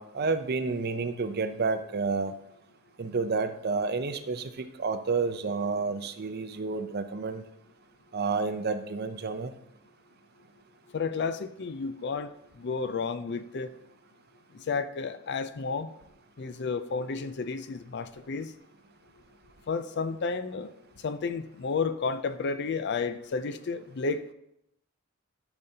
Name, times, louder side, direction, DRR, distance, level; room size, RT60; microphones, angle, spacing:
voice 1, 0.0-2.3 3.0-7.4 8.1-9.5, right 4 dB, 50° right, 0.5 m, -30 dB
voice 2, 10.9-13.7 14.5-15.9 16.4-18.5 19.7-20.7 21.0-24.3, left 4 dB, 55° left, 0.4 m, -32 dB
12.0 x 7.0 x 2.8 m
head